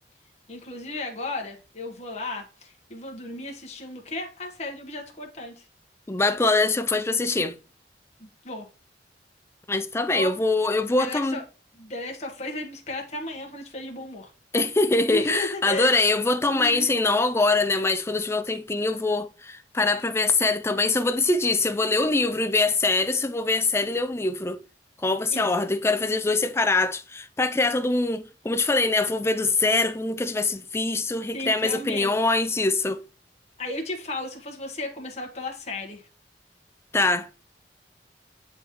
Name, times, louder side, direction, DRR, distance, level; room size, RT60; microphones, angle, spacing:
voice 1, 0.5-5.7 8.2-8.7 10.1-10.4 11.0-11.4 11.7-14.3 15.1-16.0 16.5-16.9 25.3-25.5 31.3-32.3 33.6-36.1, left 2 dB, 40° left, 1.1 m, -34 dB
voice 2, 6.1-7.5 9.7-11.4 14.5-24.6 25.0-33.0 36.9-37.3, left 3 dB, 15° left, 0.4 m, -23 dB
8.8 x 3.6 x 3.0 m
head